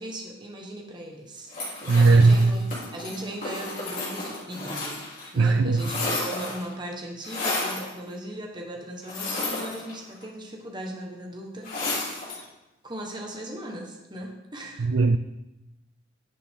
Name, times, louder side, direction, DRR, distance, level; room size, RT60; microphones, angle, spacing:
voice 1, 0.0-1.5 1.8-5.0 5.3-12.4 12.8-14.9, right 1 dB, 25° right, 1 dB, 1.4 m, -38 dB
sound 1, 1.5-5.3 5.5-6.7 7.2-7.9 9.0-10.2 11.6-12.4, left 2 dB, 40° left, 3.7 m, -32 dB
voice 2, 1.9-2.7 5.4-5.9 14.8-15.2, right 3 dB, 75° right, 10 dB, 0.4 m, -18 dB
11.0 x 9.1 x 3.7 m, 0.96 s
head